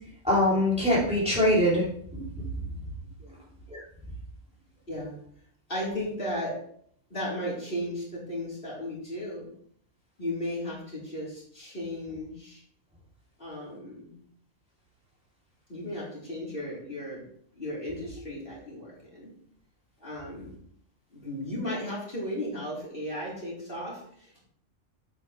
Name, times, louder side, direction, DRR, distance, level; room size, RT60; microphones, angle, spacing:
voice 1, 0.2-1.8 2.1-2.5 3.7-3.8, left 1 dB, 5° right, -7 dB, 2.9 m, -23 dB
voice 2, 5.7-6.6 7.1-9.5 10.2-12.6 13.4-14.1 15.7-17.2 17.5-19.3 20.0-20.6 21.1-24.4, left 1 dB, 45° left, -6 dB, 3.9 m, -35 dB
9.0 x 8.6 x 3.2 m, 0.65 s
omnidirectional pair, 1.4 m